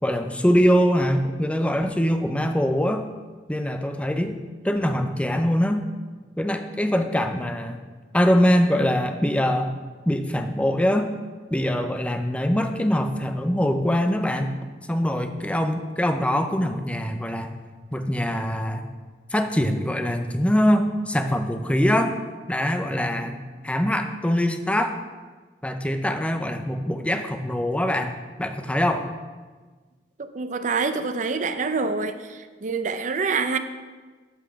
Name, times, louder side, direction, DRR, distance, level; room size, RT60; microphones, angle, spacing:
voice 1, 0.0-3.0 3.5-4.4 4.6-5.8 6.4-7.8 8.1-9.7 10.1-11.1 11.5-14.5 14.9-17.5 17.9-18.9 19.3-22.1 22.5-25.0 25.6-29.1, equal, 5° left, 7 dB, 0.5 m, -23 dB
voice 2, 30.2-33.6, right 4 dB, 45° right, 9 dB, 0.5 m, -26 dB
8.3 x 5.9 x 5.7 m, 1.4 s
head